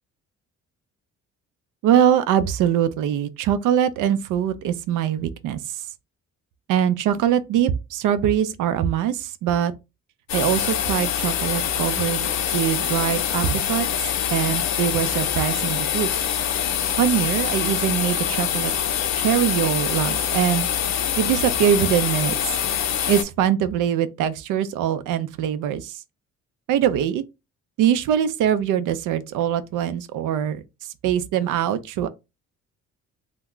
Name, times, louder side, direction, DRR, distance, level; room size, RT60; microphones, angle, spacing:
voice 1, 1.8-5.8 6.7-9.7 10.3-13.9 14.3-16.1 17.0-18.7 19.2-20.7 21.2-22.5 23.1-26.0 26.7-27.2 27.8-30.6 31.0-32.1, right 9 dB, 85° right, 0.5 m, -22 dB
sound 1, 10.3-23.2, left 9 dB, 65° left, 0.5 m, -24 dB
2.3 x 2.1 x 3.6 m
cardioid pair, 90°, 30 cm